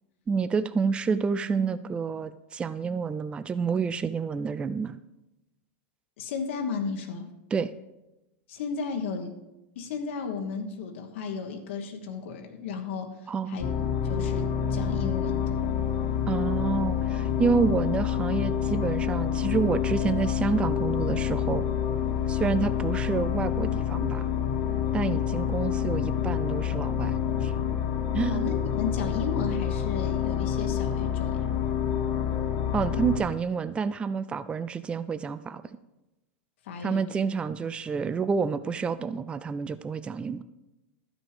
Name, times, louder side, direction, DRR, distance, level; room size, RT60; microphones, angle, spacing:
voice 1, 0.3-5.0 7.5-7.7 13.3-13.6 16.3-21.6 22.3-24.3 24.9-27.1 27.4-27.5 28.1-28.5 32.7-35.6 36.8-40.4, right 5 dB, 15° right, 14 dB, 0.3 m, -28 dB
voice 2, 6.2-7.3 8.5-9.3 9.7-13.1 13.5-13.7 14.0-15.6 28.3-31.4 36.6-37.2, left 5 dB, 70° left, 4 dB, 1.3 m, -34 dB
sound 1, 13.6-33.2, left 9 dB, 50° left, 1.5 m, -27 dB
12.0 x 6.2 x 4.9 m, 0.97 s
hypercardioid pair, 120°, 7 cm